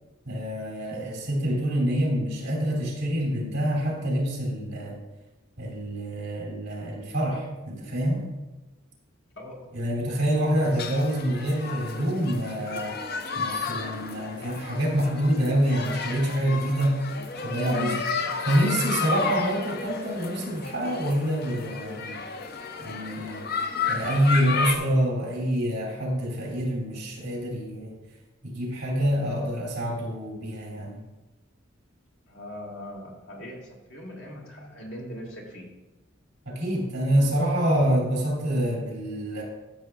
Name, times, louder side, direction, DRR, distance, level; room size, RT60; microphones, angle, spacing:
voice 1, 0.2-5.0 5.6-8.3 9.7-12.9 13.3-17.0 17.4-17.9 18.4-22.2 22.8-23.4 23.9-27.9 28.4-31.0 36.4-39.4, equal, 55° right, -3 dB, 2.7 m, -26 dB
voice 2, 9.4-9.8 15.8-16.1 16.8-16.9 17.7-18.0 32.3-35.7, equal, 85° left, -2 dB, 2.0 m, -40 dB
sound 1, 10.6-24.8, left 5 dB, 50° left, 0.5 m, -32 dB
12.5 x 6.7 x 2.4 m, 1.1 s
head